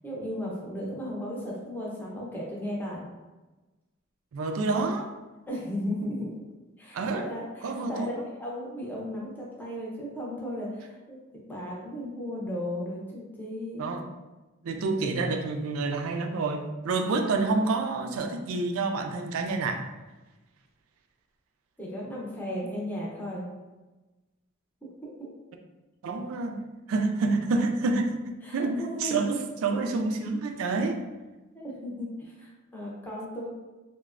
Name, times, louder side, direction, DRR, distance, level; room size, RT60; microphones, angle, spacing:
voice 1, 0.0-3.1 5.5-6.3 6.8-14.0 21.8-23.5 24.8-25.3 28.4-29.4 31.5-33.5, equal, 10° left, -5 dB, 0.6 m, -35 dB
voice 2, 4.3-5.1 6.0-6.1 6.9-7.3 7.6-8.3 13.8-14.0 14.6-19.8 26.0-26.6 26.9-31.0, right 3 dB, 75° right, 5 dB, 0.3 m, -28 dB
3.0 x 2.1 x 2.4 m, 1.1 s
head